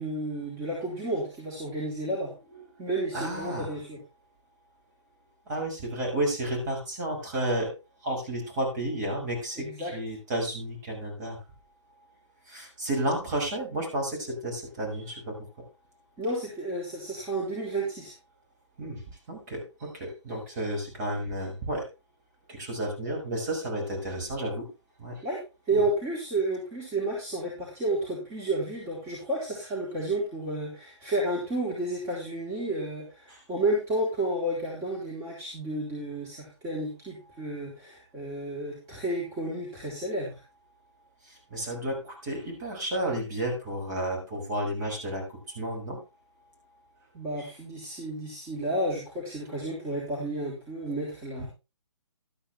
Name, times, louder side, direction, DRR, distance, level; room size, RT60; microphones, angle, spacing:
voice 1, 0.0-2.3 2.8-4.0 9.6-9.9 16.2-18.1 25.2-25.4 25.7-40.3 47.1-51.5, right 1 dB, 20° right, -4 dB, 3.9 m, -31 dB
voice 2, 3.1-3.7 5.5-7.7 8.0-11.4 12.5-15.4 18.8-19.0 19.3-21.9 22.5-24.7 25.0-25.2 25.7-25.8 33.3-33.4 41.2-46.0 47.4-47.5, right 1 dB, 40° right, 1 dB, 6.5 m, -32 dB
12.5 x 10.0 x 3.4 m, 0.28 s
figure-of-eight pair, 135°, 15 cm